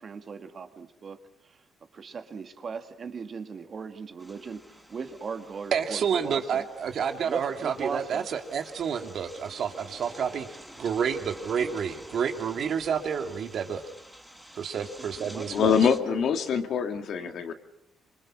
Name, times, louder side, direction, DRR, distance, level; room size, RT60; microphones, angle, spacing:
voice 1, 0.0-1.6 1.9-6.7 7.2-8.3 14.7-16.2 17.2-17.5, right 5 dB, 45° right, 7 dB, 2.0 m, -39 dB
sound 1, 4.2-16.0, equal, ahead, 4.0 m, -49 dB
voice 2, 5.7-10.5 10.8-13.8 14.6-15.8, right 7 dB, 65° right, 5 dB, 2.3 m, -29 dB
voice 3, 15.5-17.5, left 7 dB, 65° left, 6 dB, 2.1 m, -24 dB
26.0 x 24.0 x 6.2 m, 0.79 s
cardioid pair, 90°, 0 cm